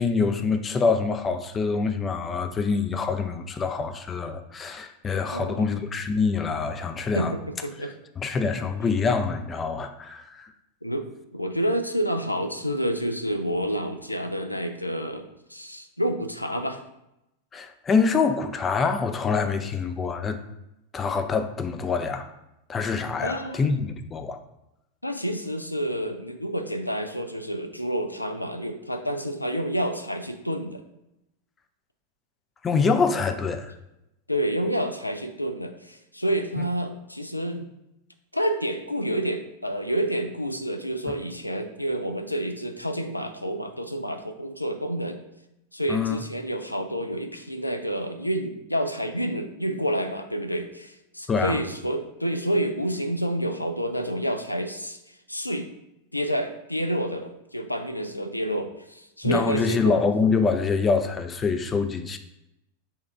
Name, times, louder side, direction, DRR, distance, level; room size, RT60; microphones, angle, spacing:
voice 1, 0.0-7.3 8.2-10.5 17.5-20.4 20.9-22.3 22.7-24.4 32.6-33.7 36.6-36.7 45.9-46.2 51.3-51.6 59.2-62.2, left 5 dB, 20° left, 7 dB, 0.4 m, -25 dB
voice 2, 5.3-5.7 7.1-7.9 10.8-11.1 11.3-15.2 15.5-16.8 19.6-19.7 23.2-23.7 25.0-30.8 34.3-37.6 38.3-45.2 45.7-55.7 56.1-60.0, equal, 85° left, 6 dB, 0.4 m, -29 dB
4.4 x 2.4 x 4.3 m, 0.88 s
figure-of-eight pair, 90°, 0 cm